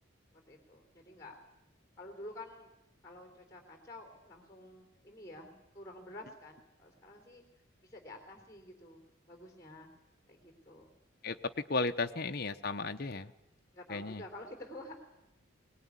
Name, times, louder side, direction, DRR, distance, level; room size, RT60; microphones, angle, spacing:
voice 1, 0.3-1.3 2.0-2.7 3.0-7.4 7.8-9.9 10.3-10.9 13.7-14.9, left 1 dB, 15° left, 3 dB, 3.6 m, -50 dB
voice 2, 11.7-13.3 13.9-14.2, left 3 dB, 50° left, 7 dB, 0.9 m, -34 dB
22.0 x 19.5 x 9.8 m, 0.85 s
head